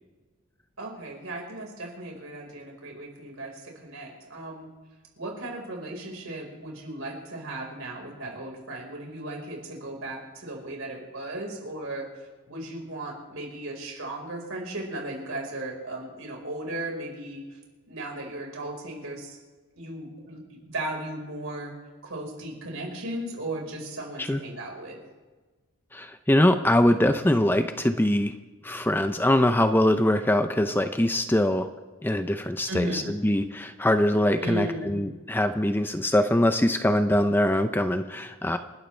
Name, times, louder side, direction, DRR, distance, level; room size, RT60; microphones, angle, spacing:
voice 1, 0.8-4.7 5.2-12.1 12.5-17.4 17.9-19.4 19.8-20.4 20.7-21.7 22.0-25.0 32.7-33.1 34.4-35.0, right 1 dB, 70° right, 0 dB, 4.7 m, -36 dB
voice 2, 25.9-28.3 28.6-31.7 32.0-38.6, left 1 dB, 10° left, 8 dB, 0.6 m, -23 dB
28.5 x 12.0 x 3.3 m, 1.3 s
head